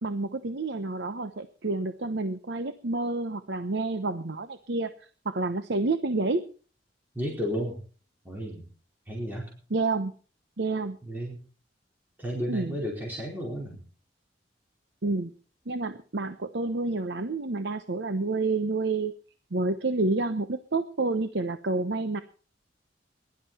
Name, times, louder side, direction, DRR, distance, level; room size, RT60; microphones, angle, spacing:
voice 1, 0.0-6.4 9.7-10.1 10.6-11.0 12.5-12.8 15.0-15.3 15.7-19.1 19.5-22.2, right 3 dB, 70° right, 10 dB, 0.9 m, -29 dB
voice 2, 7.1-7.8 8.2-8.7 9.1-9.5 11.0-11.4 12.2-13.8, equal, 10° right, -3 dB, 4.6 m, -33 dB
21.5 x 12.0 x 4.4 m, 0.39 s
head